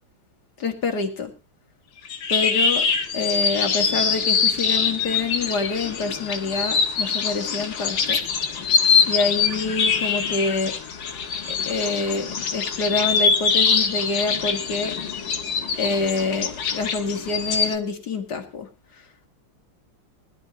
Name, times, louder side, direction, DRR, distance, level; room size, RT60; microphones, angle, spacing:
voice 1, 0.6-1.3 2.3-2.9 3.1-8.2 9.1-10.7 11.7-14.9 15.8-18.7, left 3 dB, 55° left, 3 dB, 2.6 m, -26 dB
sound 1, 2.1-17.8, left 6 dB, 70° left, 2.1 m, -23 dB
21.0 x 12.0 x 2.8 m, 0.28 s
omnidirectional pair, 2.2 m